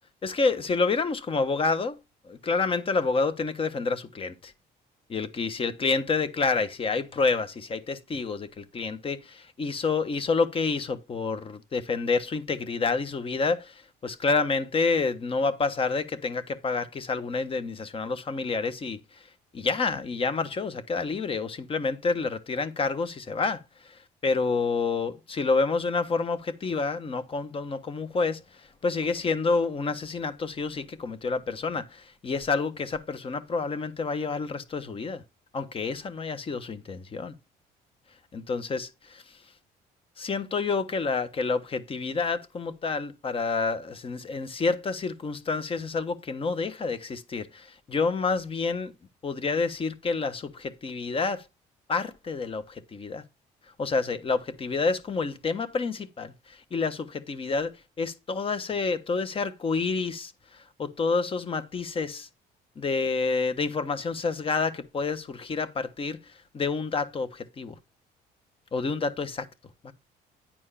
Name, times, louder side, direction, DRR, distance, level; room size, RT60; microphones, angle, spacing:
voice 1, 0.2-2.0 2.2-4.5 5.1-19.2 19.5-35.2 35.5-37.3 38.3-39.2 40.2-48.9 49.2-51.4 51.9-53.2 53.8-57.7 58.0-62.3 62.8-66.2 66.5-67.7 68.7-69.5 69.8-69.9, left 4 dB, 30° left, 1.2 m, -28 dB
10.0 x 4.6 x 5.6 m
cardioid pair, 110°, 17 cm